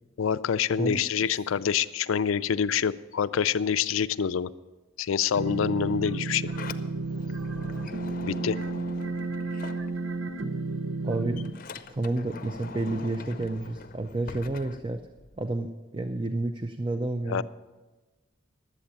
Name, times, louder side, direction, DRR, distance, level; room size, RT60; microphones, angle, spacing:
voice 1, 0.2-4.5 5.0-6.5 8.2-8.6 17.3-17.4, left 7 dB, 90° left, 14 dB, 0.4 m, -26 dB
sound 1, 5.3-11.5, right 3 dB, 75° right, 0.9 m, -32 dB
Sliding door, 6.2-10.4 10.7-15.5, left 4 dB, 45° left, 0.6 m, -44 dB
voice 2, 11.0-11.4 11.9-15.0 15.4-17.4, right 2 dB, 25° right, 8 dB, 0.5 m, -30 dB
11.5 x 8.2 x 8.5 m, 1.2 s
head